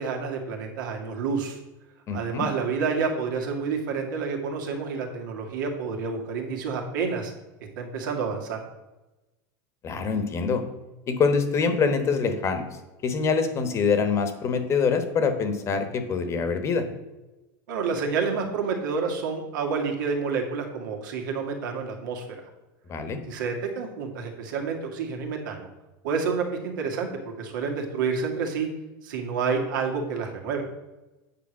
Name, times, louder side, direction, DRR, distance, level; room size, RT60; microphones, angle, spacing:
voice 1, 0.0-1.6 2.1-7.3 7.8-8.6 17.7-22.2 23.2-25.7 26.0-28.7 29.0-30.6, right 5 dB, 85° right, 2 dB, 2.1 m, -29 dB
voice 2, 2.1-2.5 9.8-10.6 11.1-12.6 13.0-16.8 22.9-23.2, left 5 dB, 25° left, 8 dB, 1.1 m, -25 dB
8.8 x 5.0 x 6.3 m, 1.1 s
supercardioid pair, 150°, 10 cm